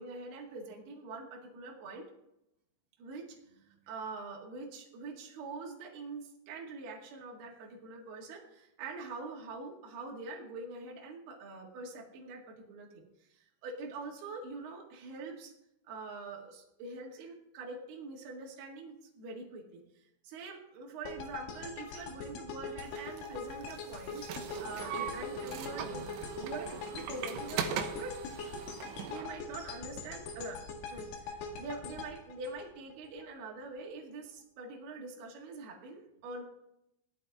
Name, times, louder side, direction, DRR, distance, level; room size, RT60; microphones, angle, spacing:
voice 1, 0.0-2.1 3.0-15.5 15.8-19.8 20.2-24.3 24.6-26.1 26.4-28.2 29.1-30.6 30.9-36.4, right 3 dB, 60° right, -2 dB, 3.7 m, -44 dB
sound 1, 21.0-33.2, left 4 dB, 85° left, 4.4 m, -43 dB
sound 2, 22.9-29.3, right 7 dB, 80° right, 3.5 m, -39 dB
17.5 x 12.0 x 3.6 m, 0.84 s
omnidirectional pair, 5.4 m